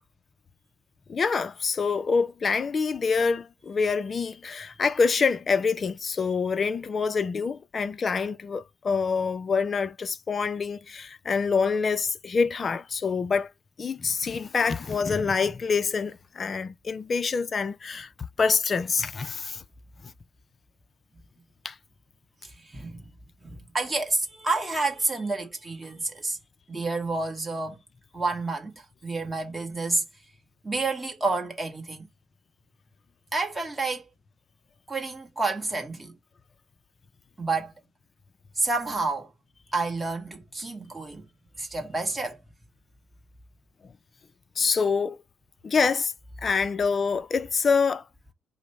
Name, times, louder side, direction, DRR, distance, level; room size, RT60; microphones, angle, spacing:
voice 1, 1.1-13.5 13.8-19.6 21.6-21.7 44.6-45.2 45.6-46.1 46.4-48.0, left 5 dB, 25° left, 0.4 m, -26 dB
voice 2, 22.7-23.1 23.4-26.4 26.7-27.8 28.1-28.7 29.0-30.0 30.6-32.1 33.3-34.0 34.9-36.1 37.4-37.7 38.6-39.3 39.7-41.3 41.6-42.4, right 3 dB, 10° right, 1.1 m, -29 dB
5.0 x 2.0 x 4.2 m
cardioid pair, 170°, 0 cm